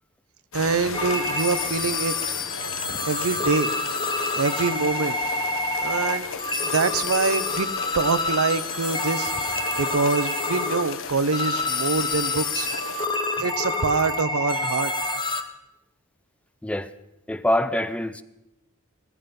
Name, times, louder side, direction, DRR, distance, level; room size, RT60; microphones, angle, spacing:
sound 1, 0.5-13.1, left 6 dB, 65° left, 1.0 m, -36 dB
voice 1, 0.5-2.1 3.1-3.7 4.4-5.2 5.8-6.3 6.7-7.7 7.9-9.3 9.8-12.7 13.4-14.9, right 4 dB, 75° right, 0.8 m, -25 dB
sound 2, 0.9-15.4, left 2 dB, 20° left, 1.1 m, -28 dB
voice 2, 17.3-18.2, left 1 dB, 5° left, 0.5 m, -25 dB
17.5 x 14.5 x 5.3 m
head